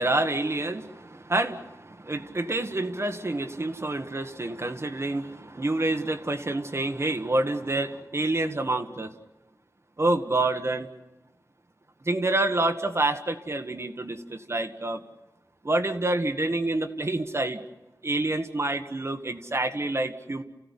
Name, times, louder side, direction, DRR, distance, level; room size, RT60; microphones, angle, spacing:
voice 1, 0.0-9.1 10.0-10.9 12.1-15.0 15.6-17.6 18.0-20.4, right 2 dB, 40° right, 6 dB, 1.5 m, -27 dB
29.5 x 16.0 x 9.8 m, 1.0 s
wide cardioid pair, 80°, 7 cm